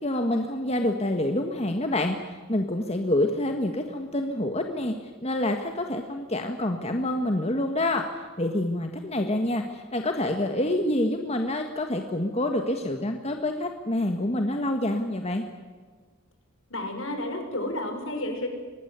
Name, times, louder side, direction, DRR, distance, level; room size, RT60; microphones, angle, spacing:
voice 1, 0.0-4.9 5.2-8.0 8.4-15.4, left 1 dB, 30° left, 4 dB, 1.6 m, -27 dB
voice 2, 16.7-18.5, left 1 dB, 65° left, 5 dB, 5.9 m, -31 dB
24.0 x 19.5 x 9.5 m, 1.5 s
head